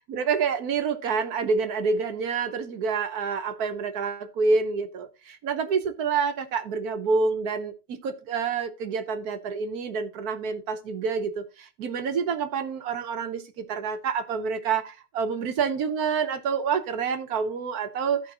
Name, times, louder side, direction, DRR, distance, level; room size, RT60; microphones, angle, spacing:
voice 1, 0.1-18.3, right 5 dB, 80° right, 1.5 m, -28 dB
14.0 x 5.1 x 2.9 m
omnidirectional pair, 1.6 m